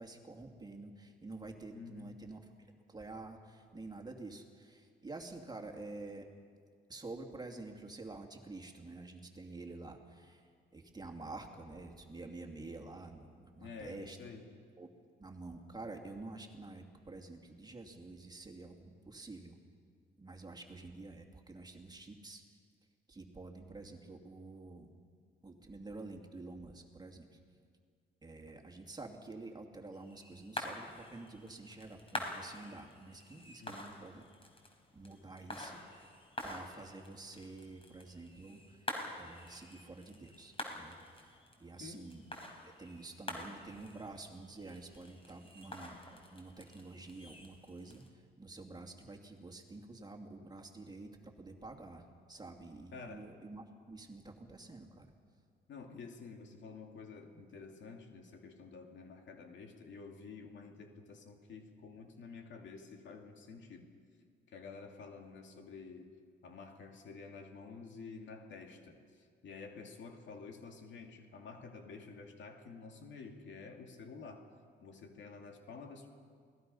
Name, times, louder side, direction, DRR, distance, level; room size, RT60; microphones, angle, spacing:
voice 1, 0.0-2.4 2.9-6.2 6.9-14.2 14.8-14.9 15.2-19.6 20.2-22.4 23.1-24.9 25.4-27.4 28.2-34.3 34.9-35.8 36.4-42.2 42.6-48.0 48.4-55.1, right 2 dB, 20° right, 2 dB, 2.6 m, -49 dB
voice 2, 1.7-2.1 13.6-14.5 33.6-33.9 41.8-42.1 52.9-53.3 55.7-63.9 64.5-66.1 66.4-69.0 69.4-74.5 74.8-76.1, left 4 dB, 65° left, 3 dB, 2.6 m, -50 dB
sound 1, 29.9-48.1, left 1 dB, 30° left, 4.1 m, -47 dB
28.5 x 18.5 x 5.6 m, 2.1 s
cardioid pair, 90°, 20 cm